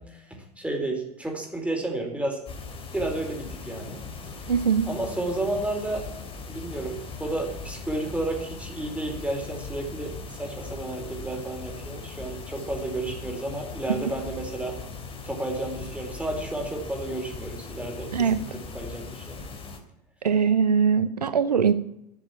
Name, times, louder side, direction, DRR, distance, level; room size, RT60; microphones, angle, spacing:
voice 1, 0.0-2.4 2.9-4.1 4.8-6.1 6.5-14.8 15.2-19.5, right 2 dB, 5° right, 4.4 m, -32 dB
sound 1, 2.5-19.8, left 4 dB, 25° left, 2.9 m, -39 dB
voice 2, 4.5-4.9 18.1-18.4 20.2-21.7, right 6 dB, 80° right, 0.7 m, -21 dB
12.0 x 7.3 x 10.0 m
figure-of-eight pair, 80°, 20 cm